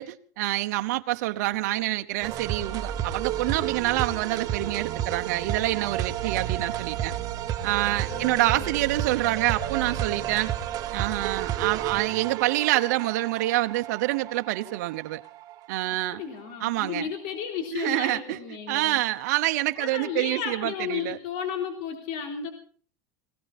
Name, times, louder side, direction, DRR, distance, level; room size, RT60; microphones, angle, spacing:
voice 1, 0.0-7.1 7.6-10.5 10.9-15.2 15.7-16.2 16.6-17.1 17.7-18.4 18.7-21.2, right 17 dB, 80° right, 0.9 m, -27 dB
sound 1, 2.2-15.6, right 11 dB, 45° right, 1.5 m, -31 dB
voice 2, 8.1-8.8 16.1-19.0 19.8-22.5, left 7 dB, 65° left, 3.6 m, -33 dB
20.0 x 17.0 x 4.2 m
supercardioid pair, 135°, 9 cm